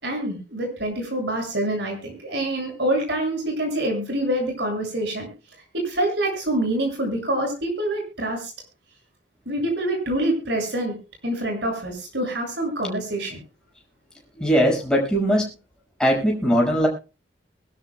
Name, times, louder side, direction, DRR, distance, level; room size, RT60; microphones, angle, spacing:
voice 1, 0.0-5.3 5.7-8.5 9.5-10.9 11.2-13.4, right 1 dB, 70° right, 2 dB, 7.1 m, -26 dB
voice 2, 14.4-15.5 16.0-16.9, equal, 5° left, -2 dB, 6.1 m, -20 dB
23.5 x 12.5 x 2.3 m, 0.32 s
head